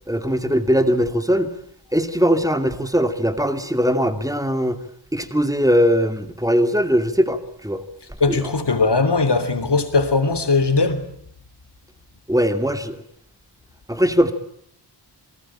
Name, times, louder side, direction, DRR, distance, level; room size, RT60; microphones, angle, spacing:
voice 1, 0.1-1.5 1.9-4.8 5.1-7.8 8.3-8.5 12.3-13.0 13.9-14.3, equal, 10° right, 2.5 m, -20 dB
voice 2, 8.2-11.1, left 3 dB, 70° left, 3.4 m, -19 dB
28.0 x 19.5 x 8.9 m
wide cardioid pair, 85°, 42 cm